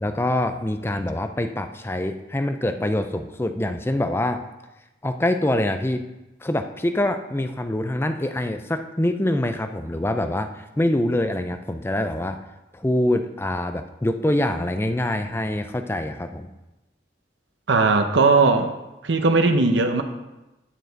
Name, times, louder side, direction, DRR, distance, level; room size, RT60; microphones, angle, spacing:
voice 1, 0.0-4.4 5.0-6.0 6.4-12.4 12.7-16.5, left 1 dB, 15° left, 8 dB, 0.4 m, -25 dB
voice 2, 17.7-18.7 19.0-20.0, right 3 dB, 80° right, 7 dB, 0.8 m, -18 dB
9.2 x 6.5 x 4.0 m, 1.0 s
head